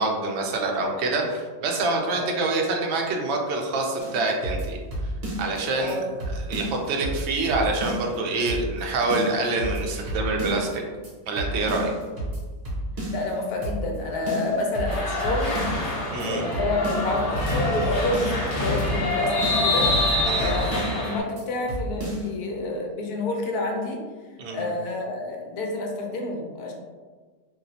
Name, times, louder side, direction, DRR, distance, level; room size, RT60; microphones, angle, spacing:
voice 1, 0.0-4.8 5.4-6.0 6.5-10.8 11.3-11.9 16.1-16.4 20.2-20.5 24.4-24.7, right 3 dB, 65° right, 1 dB, 0.6 m, -26 dB
voice 2, 2.1-2.4 5.8-6.0 13.1-15.6 16.2-19.9 20.4-24.0 24.5-26.7, left 2 dB, 80° left, 1 dB, 1.1 m, -28 dB
sound 1, 4.0-5.6 5.9-6.0 6.2-8.2 8.5-8.8 9.1-10.7 11.0-11.1 11.4-13.3 13.6-14.0 14.3-15.9 16.2-16.3 16.5-18.5 18.8-19.1 19.4-21.1 21.4-21.5 21.7-22.3, right 1 dB, 45° right, 1.0 m, -31 dB
sound 2, 14.9-21.2, left 2 dB, 40° left, 0.9 m, -26 dB
2.9 x 2.8 x 2.7 m, 1.4 s
omnidirectional pair, 1.6 m